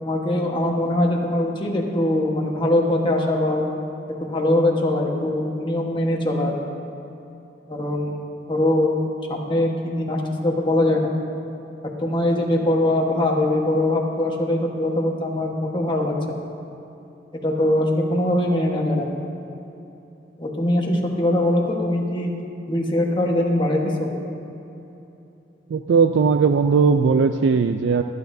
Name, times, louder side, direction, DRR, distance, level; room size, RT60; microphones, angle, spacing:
voice 1, 0.0-3.7 4.2-6.5 7.7-8.2 8.5-8.9 9.3-11.1 12.0-16.1 17.4-19.2 20.4-22.3 22.7-24.1, left 1 dB, 25° left, -1 dB, 1.3 m, -22 dB
voice 2, 25.7-28.0, right 5 dB, 85° right, 8 dB, 0.4 m, -18 dB
23.0 x 9.5 x 2.7 m, 2.9 s
head